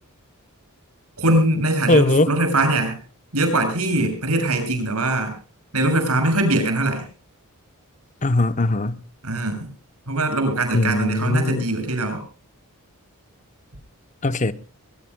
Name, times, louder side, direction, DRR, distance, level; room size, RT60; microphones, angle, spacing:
voice 1, 1.2-3.0 3.3-5.3 5.7-7.0 9.2-9.7 10.1-12.2, right 2 dB, 85° right, 6.8 m, -22 dB
voice 2, 1.9-2.3 8.2-9.0 10.7-11.7 14.2-14.5, left 2 dB, 35° left, 0.8 m, -20 dB
23.0 x 20.5 x 2.2 m
head